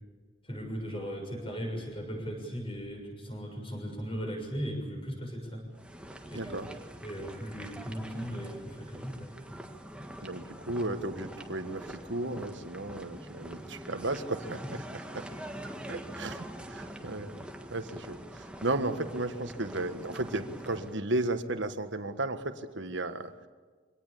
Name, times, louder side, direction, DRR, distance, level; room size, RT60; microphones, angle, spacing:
voice 1, 0.4-5.6 6.3-6.6 7.0-9.6, equal, 25° left, 2 dB, 6.5 m, -38 dB
sound 1, 5.8-21.0, right 1 dB, 5° right, 1.5 m, -44 dB
voice 2, 6.3-6.7 10.2-14.8 15.1-15.3 15.9-17.3 17.7-23.3, right 2 dB, 65° right, 9 dB, 1.6 m, -34 dB
24.5 x 18.5 x 8.6 m, 1.5 s
head